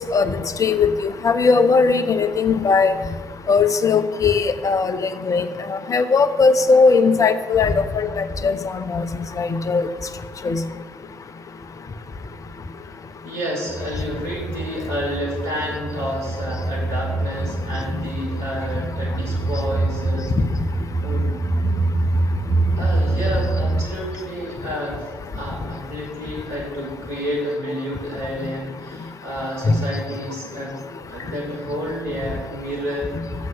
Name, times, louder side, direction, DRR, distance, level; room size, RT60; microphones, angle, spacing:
voice 1, 0.6-2.9 3.5-8.5 8.9-9.0 9.4-9.8 10.4-10.6 29.7-29.8, left 4 dB, 40° left, 12 dB, 0.9 m, -18 dB
voice 2, 13.2-20.3 21.0-21.4 22.8-30.8 31.1-33.5, equal, 80° right, -3 dB, 3.1 m, -30 dB
sound 1, 13.7-23.8, right 2 dB, 35° right, 1.0 m, -25 dB
12.5 x 7.7 x 5.7 m, 1.4 s
hypercardioid pair, 45°, 8 cm